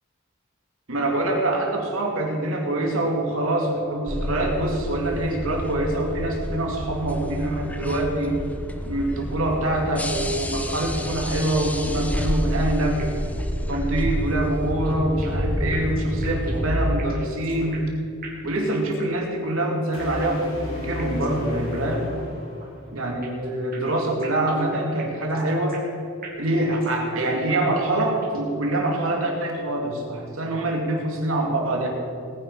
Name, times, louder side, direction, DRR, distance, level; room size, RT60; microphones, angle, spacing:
voice 1, 0.9-8.4 8.8-13.2 13.6-17.8 18.4-22.1 22.9-25.8 26.4-31.9, right 1 dB, 80° right, 1 dB, 2.7 m, -25 dB
sound 1, 4.1-17.0, equal, 5° left, 0.8 m, -29 dB
sound 2, 13.0-13.4 13.7-13.8 14.1-14.2 14.6-15.5 15.7-18.0 18.2-19.2 19.5-19.6 20.0-20.5 21.0-21.4 21.7-21.8 22.1-22.2 22.6-23.5 23.7-26.0 26.2-27.2 27.5-27.6 28.0-28.5, right 4 dB, 45° right, 3.4 m, -44 dB
sound 3, 19.9-23.0, left 2 dB, 80° left, 3.1 m, -35 dB
20.5 x 9.9 x 5.0 m, 2.4 s
head